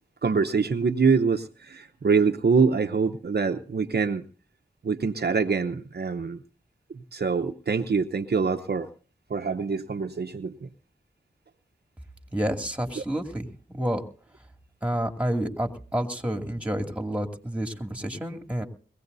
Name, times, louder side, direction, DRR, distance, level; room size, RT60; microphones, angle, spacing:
voice 1, 0.2-4.2 4.8-6.4 7.1-8.9 9.3-10.7 13.0-13.1, right 5 dB, 55° right, 6 dB, 0.8 m, -25 dB
voice 2, 12.3-14.0 14.8-18.6, right 1 dB, 5° right, 3 dB, 2.5 m, -29 dB
22.0 x 17.0 x 2.7 m, 0.40 s
cardioid pair, 55°, 19 cm